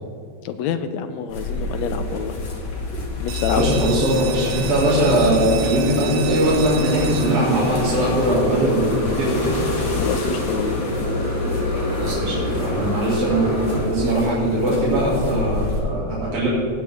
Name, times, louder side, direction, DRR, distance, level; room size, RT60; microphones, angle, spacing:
voice 1, 0.4-2.4 3.2-3.9 9.9-10.8, left 8 dB, 80° left, 9 dB, 1.7 m, -27 dB
sound 1, 1.3-15.8, left 2 dB, 60° left, 3.1 m, -28 dB
sound 2, 3.3-8.7, right 10 dB, 75° right, 1.9 m, -34 dB
voice 2, 3.5-9.6 12.0-16.5, right 1 dB, 50° right, -8 dB, 3.3 m, -21 dB
Motorcycle, 4.1-13.8, equal, 15° left, 1.8 m, -28 dB
17.5 x 8.4 x 3.5 m, 2.3 s
omnidirectional pair, 3.4 m